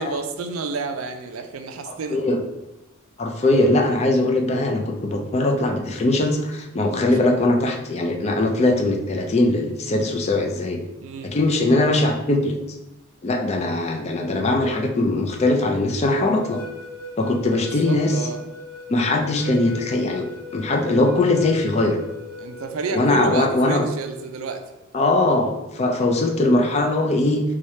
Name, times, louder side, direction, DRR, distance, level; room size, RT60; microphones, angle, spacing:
voice 1, 0.0-2.2 11.0-11.3 17.8-18.4 22.4-24.6, right 4 dB, 70° right, 6 dB, 0.4 m, -29 dB
voice 2, 1.9-2.4 3.2-10.8 11.2-12.6 13.2-16.6 17.2-18.2 18.9-20.3 20.5-22.0 22.9-23.8 24.9-27.4, left 2 dB, 30° left, 2 dB, 0.4 m, -21 dB
sound 1, 16.2-24.0, left 2 dB, 75° left, 0.6 m, -39 dB
3.2 x 2.3 x 4.1 m, 0.97 s
head